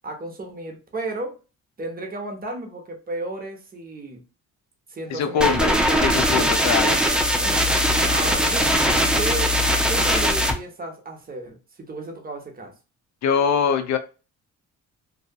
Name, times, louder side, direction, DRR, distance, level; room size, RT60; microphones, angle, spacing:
voice 1, 0.0-1.3 1.8-4.2 4.9-6.0 6.3-6.5 6.8-7.7 8.1-8.7 9.1-9.5 9.9-11.6 11.9-12.7, right 2 dB, 30° right, 0.8 m, -33 dB
voice 2, 5.1-5.7 6.0-7.0 13.2-14.0, left 7 dB, 65° left, 0.5 m, -22 dB
sound 1, 5.4-10.5, equal, 5° right, 0.4 m, -20 dB
2.7 x 2.3 x 2.2 m
cardioid pair, 90°, 30 cm